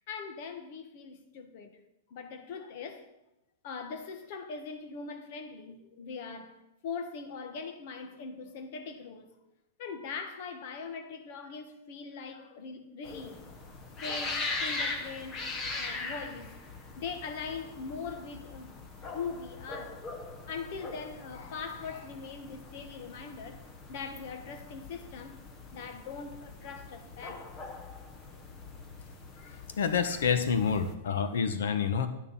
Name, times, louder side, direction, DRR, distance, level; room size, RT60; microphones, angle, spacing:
voice 1, 0.1-1.8 2.1-3.1 3.6-9.3 9.8-13.4 14.0-15.5 15.8-16.5 17.0-18.7 19.1-20.0 20.5-23.6 23.9-25.4 25.7-27.5 29.3-30.2, left 5 dB, 40° left, 1.4 m, -41 dB
sound 1, 13.0-30.9, left 3 dB, 20° left, 1.1 m, -41 dB
voice 2, 29.8-32.1, left 6 dB, 80° left, 1.3 m, -28 dB
12.5 x 9.6 x 5.6 m
supercardioid pair, 175°, 0 cm